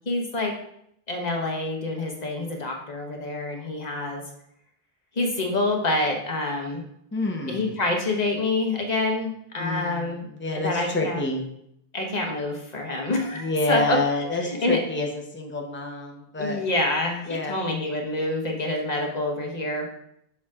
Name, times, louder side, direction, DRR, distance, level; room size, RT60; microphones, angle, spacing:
voice 1, 0.1-0.5 1.1-4.2 5.2-6.8 7.5-10.2 10.5-11.2 11.9-14.8 16.4-19.8, left 2 dB, 40° left, 1 dB, 1.2 m, -27 dB
voice 2, 7.1-7.8 9.6-11.4 13.3-16.6 17.3-17.6, left 2 dB, 10° left, 1 dB, 0.8 m, -28 dB
7.0 x 6.2 x 2.4 m, 0.74 s
omnidirectional pair, 1.1 m